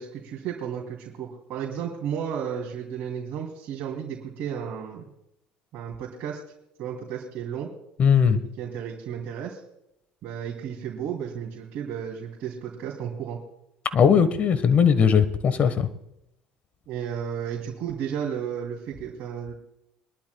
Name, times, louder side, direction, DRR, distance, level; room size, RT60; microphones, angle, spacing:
voice 1, 0.0-5.0 5.7-6.4 6.8-7.7 8.6-9.6 10.2-13.4 16.9-19.5, right 8 dB, 60° right, -4 dB, 3.0 m, -33 dB
voice 2, 8.0-8.5 13.9-15.9, left 7 dB, 45° left, 13 dB, 1.3 m, -19 dB
24.0 x 12.0 x 2.3 m, 0.81 s
supercardioid pair, 75°, 3 cm